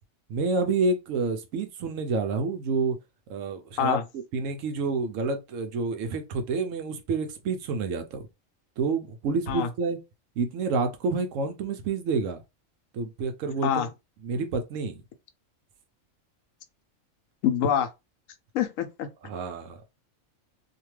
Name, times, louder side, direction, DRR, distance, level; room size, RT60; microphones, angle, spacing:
voice 1, 0.3-3.0 3.3-4.0 4.3-8.3 8.8-10.0 10.4-12.4 12.9-13.9 14.2-15.0 19.2-19.8, right 4 dB, 80° right, 1.0 m, -28 dB
voice 2, 17.4-17.9 18.5-19.1, left 9 dB, 80° left, 0.9 m, -25 dB
2.8 x 2.2 x 3.0 m
omnidirectional pair, 1.4 m